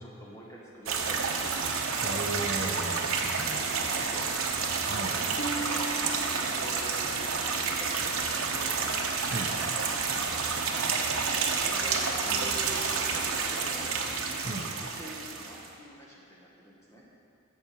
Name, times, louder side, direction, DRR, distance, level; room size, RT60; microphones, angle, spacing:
voice 1, 0.0-1.5 3.4-4.3 5.1-7.4 7.8-8.8 9.2-9.8 11.1-14.0 14.8-17.0, right 1 dB, 15° left, -5 dB, 1.5 m, -47 dB
sound 1, 0.9-15.7, right 5 dB, 75° right, 0.9 m, -30 dB
voice 2, 2.0-3.6 4.8-5.2 9.3-9.5 14.4-14.7, right 2 dB, 40° right, 0 dB, 0.7 m, -35 dB
Harp, 5.4-9.1 9.7-10.1 10.7-10.8, right 3 dB, 40° left, 0.6 m, -41 dB
14.0 x 5.8 x 4.7 m, 2.5 s
head